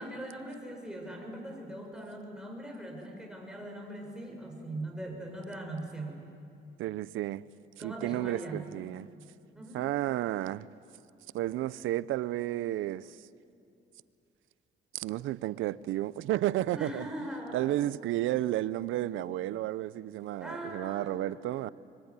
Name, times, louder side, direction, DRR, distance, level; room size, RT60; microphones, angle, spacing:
voice 1, 0.0-6.2 7.8-8.6 9.5-9.8 16.7-17.6 20.4-21.2, right 1 dB, 5° right, 6.5 m, -40 dB
voice 2, 6.8-7.4 7.8-9.1 9.7-10.7 11.3-13.2 14.9-17.0 17.5-21.7, right 14 dB, 85° right, 0.6 m, -32 dB
24.0 x 22.0 x 9.7 m
cardioid pair, 90°, 20 cm